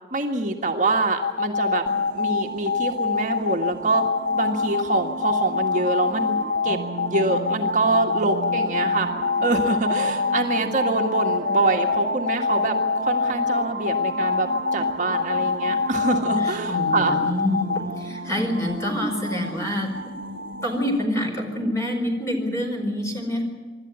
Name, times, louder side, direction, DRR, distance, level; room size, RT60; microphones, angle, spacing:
voice 1, 0.1-1.8 2.1-4.0 4.4-6.4 6.6-6.8 7.1-9.1 9.4-12.7 13.0-14.5 14.7-17.2, right 3 dB, 45° right, 2 dB, 1.8 m, -25 dB
sound 1, 1.2-17.8, left 5 dB, 80° left, 1.1 m, -24 dB
sound 2, 1.9-21.0, right 1 dB, 65° right, 3.8 m, -33 dB
voice 2, 16.4-19.9 20.6-23.4, left 1 dB, 15° left, 2 dB, 4.7 m, -26 dB
26.0 x 12.5 x 9.3 m, 1.4 s
head